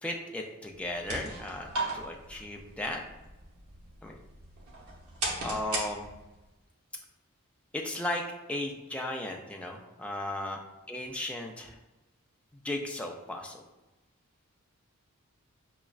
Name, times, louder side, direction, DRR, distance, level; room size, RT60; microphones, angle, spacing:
voice 1, 0.0-1.7 1.9-3.0 4.0-4.1 5.4-6.1 7.7-8.2 8.5-10.6 10.9-11.8 12.5-13.6, left 1 dB, 5° left, 0 dB, 0.3 m, -35 dB
sound 1, 0.8-6.5, right 2 dB, 75° right, 0.9 m, -38 dB
5.9 x 2.1 x 2.3 m, 1.0 s
head